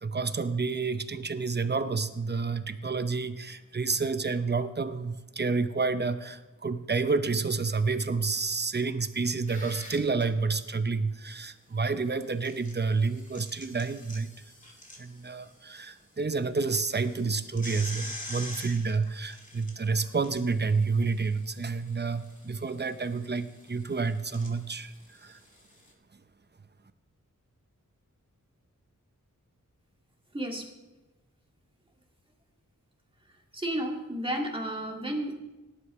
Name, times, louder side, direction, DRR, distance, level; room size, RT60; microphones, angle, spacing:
voice 1, 0.0-14.3 15.0-24.9 25.2-25.4, right 4 dB, 30° right, 11 dB, 0.7 m, -29 dB
sound 1, 9.2-10.2 12.2-15.8 16.2-16.3 16.7-25.9, left 1 dB, 25° left, 2.5 m, -46 dB
voice 2, 30.3-30.7 33.5-35.3, right 1 dB, 15° right, 0 dB, 2.1 m, -32 dB
18.0 x 11.5 x 3.2 m, 1.1 s
wide cardioid pair, 90°, 33 cm